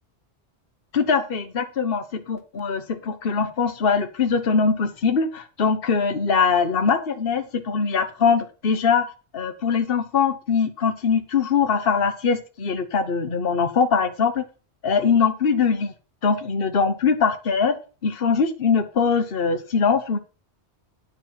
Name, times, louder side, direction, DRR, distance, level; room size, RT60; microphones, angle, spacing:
voice 1, 0.9-14.4 14.8-15.9 16.2-20.2, left 5 dB, 55° left, 8 dB, 1.4 m, -22 dB
11.5 x 4.7 x 7.4 m, 0.34 s
omnidirectional pair, 1.1 m